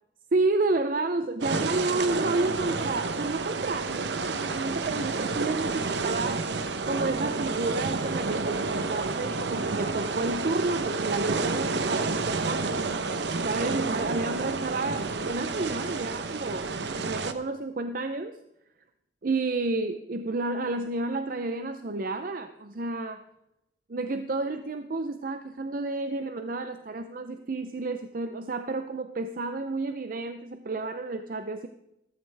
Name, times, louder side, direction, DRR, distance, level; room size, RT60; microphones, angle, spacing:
voice 1, 0.3-6.5 6.9-12.8 13.1-16.7 17.0-18.4 19.2-23.2 23.9-31.7, right 3 dB, 50° right, 8 dB, 0.6 m, -30 dB
sound 1, 1.4-17.3, right 3 dB, 70° right, 0.8 m, -30 dB
14.5 x 14.0 x 3.4 m, 0.86 s
head